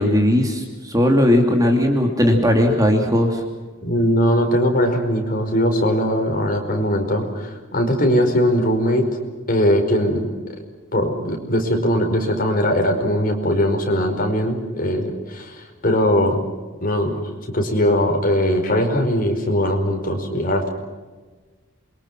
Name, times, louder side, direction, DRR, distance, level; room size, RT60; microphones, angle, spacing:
voice 1, 0.0-3.4, left 1 dB, 15° right, 2 dB, 2.8 m, -17 dB
voice 2, 3.8-9.1 9.5-10.3 10.9-16.4 16.8-17.2 17.5-20.7, equal, 45° left, 3 dB, 5.0 m, -20 dB
28.0 x 24.0 x 6.2 m, 1.3 s
head